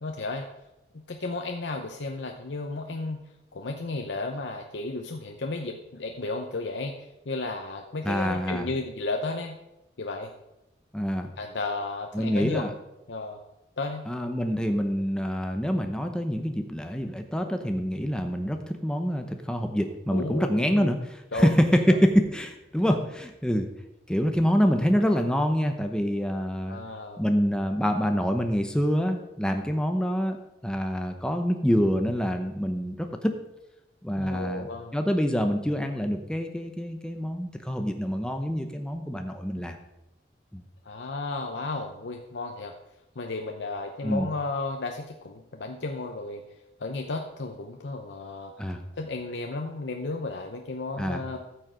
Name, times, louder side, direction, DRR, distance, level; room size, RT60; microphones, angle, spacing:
voice 1, 0.0-0.5 0.9-3.2 3.5-9.6 10.0-10.3 11.4-12.7 13.1-13.4 13.8-14.1 20.1-20.9 21.3-21.5 26.7-27.2 34.2-35.0 39.5-39.6 40.8-42.7 43.2-46.4 46.8-51.4, left 3 dB, 80° left, 3 dB, 0.8 m, -33 dB
voice 2, 8.0-8.7 10.9-11.3 12.1-12.7 14.1-21.0 21.3-23.7 24.1-26.8 27.2-30.4 30.6-33.4 34.0-39.8 40.5-40.6 44.0-44.3 48.6-48.8 51.0-51.2, equal, 5° left, 5 dB, 0.8 m, -26 dB
13.5 x 6.4 x 5.1 m, 0.91 s
head